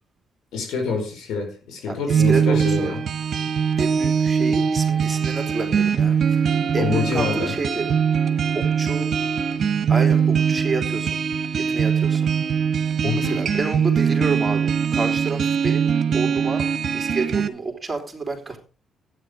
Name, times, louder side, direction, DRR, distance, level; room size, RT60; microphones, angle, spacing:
voice 1, 0.5-3.0 6.8-7.5 13.0-13.4, left 5 dB, 80° left, 4 dB, 4.7 m, -26 dB
voice 2, 1.9-3.0 3.8-7.9 8.5-9.1 9.9-11.2 11.6-12.3 13.0-18.6, right 3 dB, 15° right, 3 dB, 3.5 m, -29 dB
sound 1, 2.1-17.5, right 7 dB, 50° right, 1.4 m, -21 dB
12.0 x 9.8 x 5.2 m, 0.37 s
cardioid pair, 90°, 0 cm